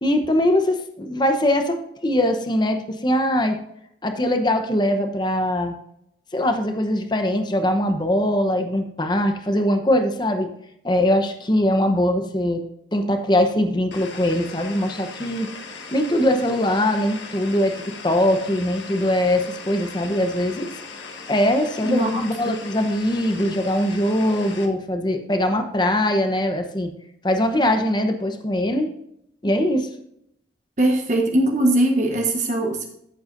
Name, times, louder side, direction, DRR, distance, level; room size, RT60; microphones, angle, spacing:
voice 1, 0.0-3.6 4.0-5.7 6.3-10.5 10.8-12.6 12.9-15.5 15.9-20.7 21.3-26.9 27.2-28.9 29.4-29.9, left 1 dB, 25° left, 6 dB, 0.9 m, -21 dB
sound 1, 13.9-24.7, left 4 dB, 80° left, 1.6 m, -38 dB
voice 2, 21.9-22.2 30.8-32.8, right 1 dB, 40° right, 1 dB, 1.1 m, -20 dB
14.0 x 7.9 x 2.6 m, 0.76 s
head